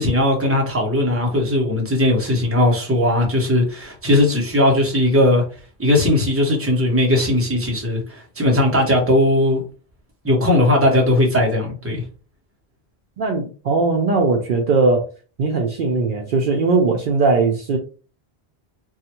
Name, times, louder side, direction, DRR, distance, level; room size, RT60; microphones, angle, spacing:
voice 1, 0.0-5.4 5.8-9.6 10.2-12.0, left 1 dB, 15° right, 0.8 m, -18 dB
voice 2, 13.2-15.1 15.4-17.8, right 3 dB, 60° right, 0.7 m, -19 dB
3.0 x 2.3 x 2.9 m
omnidirectional pair, 1.1 m